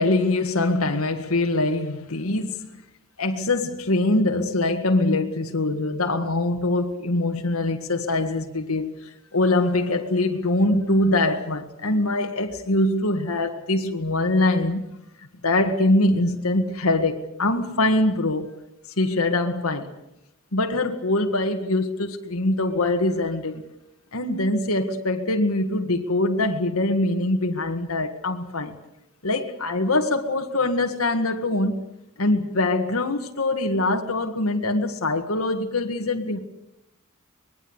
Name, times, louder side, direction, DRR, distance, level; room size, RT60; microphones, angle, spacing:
voice 1, 0.0-2.7 3.2-14.8 15.2-18.5 19.0-19.9 20.5-23.7 24.1-28.8 29.2-31.8 32.2-36.4, left 2 dB, 75° left, 1.8 m, -23 dB
25.0 x 21.0 x 8.0 m
head